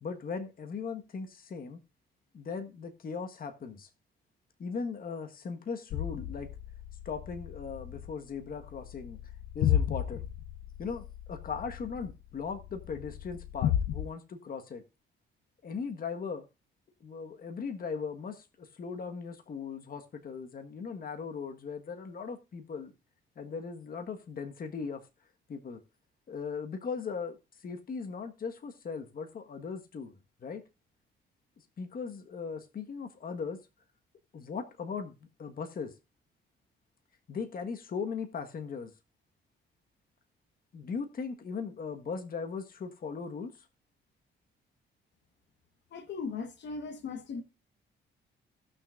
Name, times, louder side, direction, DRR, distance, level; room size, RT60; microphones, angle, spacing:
voice 1, 0.0-1.8 2.3-3.9 4.6-6.5 7.0-9.2 9.5-10.3 10.8-14.8 15.6-16.5 17.0-22.9 23.4-25.0 25.5-25.8 26.3-27.4 27.6-30.1 30.4-30.6 31.8-33.6 34.3-35.9 37.3-38.9 40.7-43.5, left 5 dB, 45° left, 1.4 m, -38 dB
sound 1, 5.9-14.1, left 10 dB, 85° left, 0.7 m, -34 dB
voice 2, 45.9-47.4, left 4 dB, 65° left, 1.4 m, -38 dB
17.5 x 6.3 x 2.5 m
cardioid pair, 90°, 20 cm